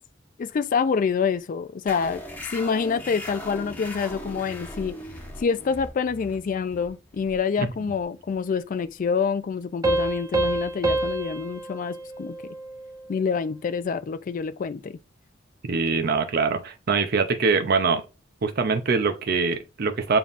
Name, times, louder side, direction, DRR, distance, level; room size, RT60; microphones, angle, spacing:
voice 1, 0.4-2.2 2.5-5.0 5.4-12.4 13.1-15.0, left 5 dB, 45° left, 0.3 m, -27 dB
sound 1, 1.9-9.0, left 1 dB, 10° left, 1.1 m, -39 dB
Piano, 9.8-13.1, right 2 dB, 20° right, 0.7 m, -27 dB
voice 2, 15.6-18.0 18.4-20.2, right 4 dB, 55° right, 0.5 m, -23 dB
7.0 x 2.7 x 2.5 m
head